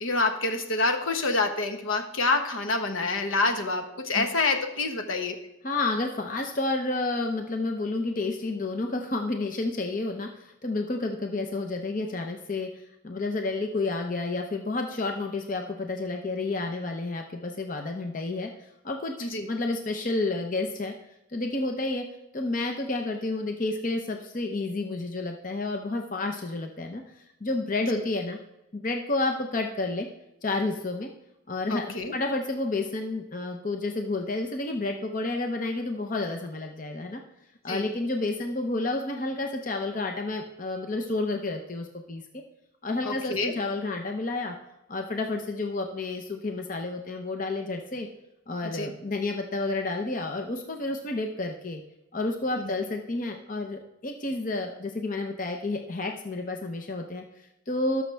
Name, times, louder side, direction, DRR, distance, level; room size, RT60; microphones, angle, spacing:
voice 1, 0.0-5.4 19.2-19.5 27.9-28.0 31.7-32.1 37.7-37.8 43.0-43.5 48.8-48.9 52.5-52.7, left 3 dB, 75° left, 5 dB, 1.3 m, -27 dB
voice 2, 5.6-19.1 19.5-20.9 21.3-22.1 22.3-28.4 28.7-30.1 30.4-31.1 31.5-37.2 37.6-42.2 42.8-44.5 44.9-48.1 48.5-51.8 52.1-58.0, left 2 dB, 40° left, 3 dB, 0.8 m, -30 dB
18.5 x 6.3 x 3.4 m, 0.91 s
head